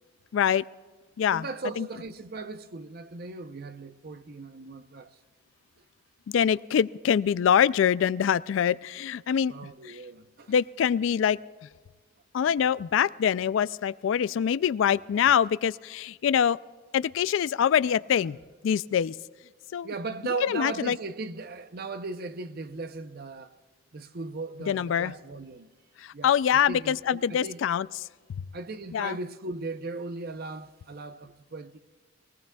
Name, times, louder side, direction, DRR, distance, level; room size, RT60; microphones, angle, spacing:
voice 1, 0.3-0.6 1.2-1.4 1.8-1.9 6.3-9.5 10.5-11.4 12.3-16.6 16.9-18.4 18.6-19.1 19.7-19.9 20.4-21.0 24.7-25.1 26.0-27.9 28.9-29.1, left 8 dB, 65° left, 0.3 m, -24 dB
voice 2, 1.3-5.2 5.8-5.9 9.5-10.6 19.8-23.5 23.9-25.7 26.1-27.6 28.5-31.8, right 3 dB, 50° right, 0.7 m, -37 dB
22.5 x 18.0 x 2.3 m
head